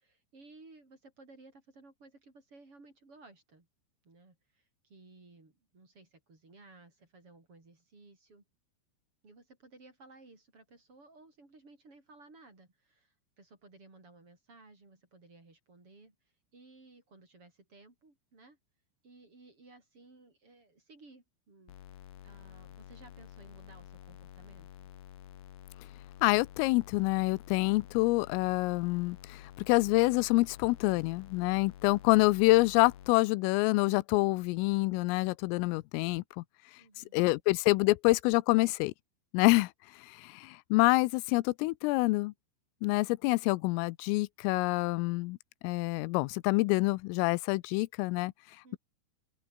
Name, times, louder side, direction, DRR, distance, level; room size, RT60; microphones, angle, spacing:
voice 1, 0.0-3.7 4.0-8.4 9.2-16.1 16.5-18.6 19.0-21.7 22.2-24.9 36.8-37.2 48.6-48.8, right 3 dB, 25° right, 6.3 m, -57 dB
sound 1, 21.7-33.1, left 11 dB, 65° left, 2.3 m, -50 dB
voice 2, 26.2-36.4 37.0-38.9 39.3-42.3 42.8-45.4 45.6-48.3, left 23 dB, 90° left, 3.3 m, -27 dB
open air
omnidirectional pair, 5.8 m